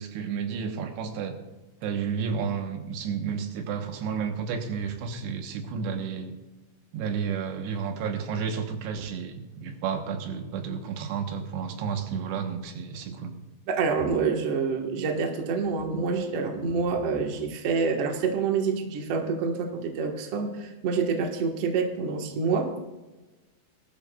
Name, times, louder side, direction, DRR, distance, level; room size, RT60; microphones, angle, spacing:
voice 1, 0.0-1.4 1.8-6.4 6.9-13.4, right 6 dB, 85° right, 5 dB, 3.3 m, -31 dB
voice 2, 13.7-22.8, right 5 dB, 60° right, 2 dB, 1.6 m, -27 dB
19.5 x 13.0 x 2.3 m, 1.1 s
omnidirectional pair, 4.8 m